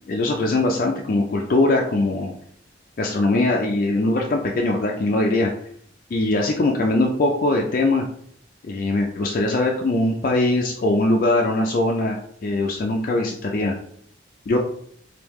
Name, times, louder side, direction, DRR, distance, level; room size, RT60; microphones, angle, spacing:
voice 1, 0.1-2.3 3.0-5.5 6.1-8.0 8.6-13.7 14.5-14.6, left 2 dB, 50° left, 0 dB, 0.3 m, -21 dB
3.4 x 2.6 x 3.1 m, 0.64 s
head